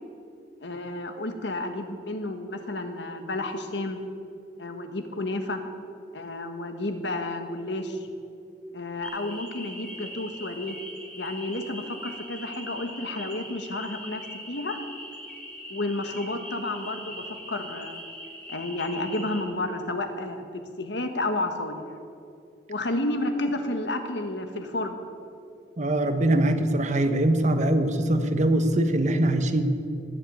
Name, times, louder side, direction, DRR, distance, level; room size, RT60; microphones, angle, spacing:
voice 1, 0.6-4.0 4.6-5.6 6.1-8.1 8.7-10.7 11.1-14.2 14.5-14.8 15.7-18.0 18.5-21.8 22.7-25.0, left 2 dB, 80° left, 6 dB, 1.5 m, -31 dB
sound 1, 9.0-19.4, equal, 10° left, 3.0 m, -41 dB
voice 2, 25.8-29.7, right 1 dB, 45° right, 8 dB, 1.2 m, -22 dB
18.0 x 7.3 x 9.4 m, 2.5 s
head